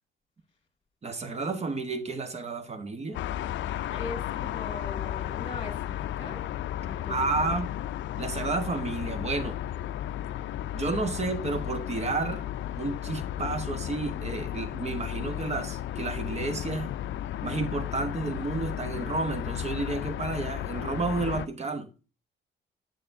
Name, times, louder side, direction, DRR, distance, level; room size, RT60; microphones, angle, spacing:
voice 1, 1.0-3.2 7.1-7.7 8.2-9.6 10.7-12.4 12.8-16.9 17.4-21.9, right 3 dB, 35° right, 1.0 m, -31 dB
sound 1, 3.1-21.5, left 12 dB, 70° left, 0.4 m, -34 dB
voice 2, 3.9-6.5 6.8-7.5, left 3 dB, 30° left, 1.9 m, -40 dB
7.7 x 6.7 x 2.6 m
cardioid pair, 90°, 20 cm